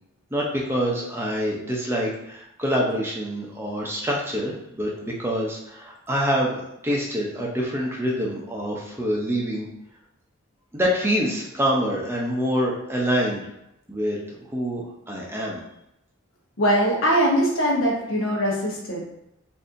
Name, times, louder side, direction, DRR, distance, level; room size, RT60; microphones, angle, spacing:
voice 1, 0.3-9.7 10.7-13.5 13.9-15.6, equal, 10° right, -3 dB, 0.6 m, -26 dB
voice 2, 16.6-19.0, equal, 65° left, -2 dB, 1.0 m, -21 dB
4.0 x 2.7 x 2.6 m, 0.83 s
head